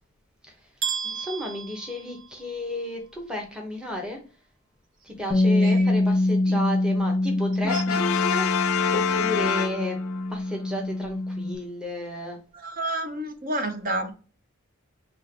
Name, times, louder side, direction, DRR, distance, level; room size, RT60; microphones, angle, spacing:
sound 1, 0.8-2.8, right 7 dB, 70° right, 0.9 m, -33 dB
voice 1, 1.0-4.2 5.0-10.0 10.3-12.4, left 1 dB, 5° right, 0 dB, 0.9 m, -33 dB
Bass guitar, 5.3-11.6, left 2 dB, 15° left, 0.6 m, -25 dB
Brass instrument, 7.7-10.3, left 7 dB, 80° left, 0.4 m, -26 dB
voice 2, 12.5-14.1, right 1 dB, 40° right, 6 dB, 0.8 m, -30 dB
3.4 x 2.9 x 4.5 m, 0.36 s
head